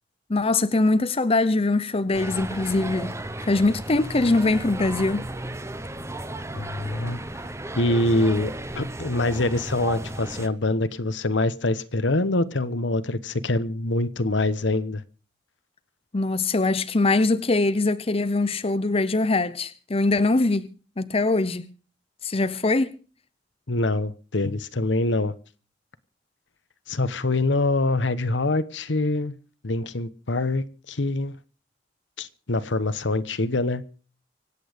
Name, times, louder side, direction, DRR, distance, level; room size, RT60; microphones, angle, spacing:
voice 1, 0.3-3.1 3.4-5.2 16.1-21.7 22.2-23.0, left 2 dB, 30° left, 0.7 m, -22 dB
sound 1, 2.1-10.5, right 1 dB, 15° right, 1.0 m, -34 dB
voice 2, 6.5-7.2 7.8-15.0 23.7-25.3 26.9-29.3 29.6-31.4 32.2-33.9, left 2 dB, 75° left, 1.1 m, -25 dB
25.0 x 8.7 x 5.1 m
head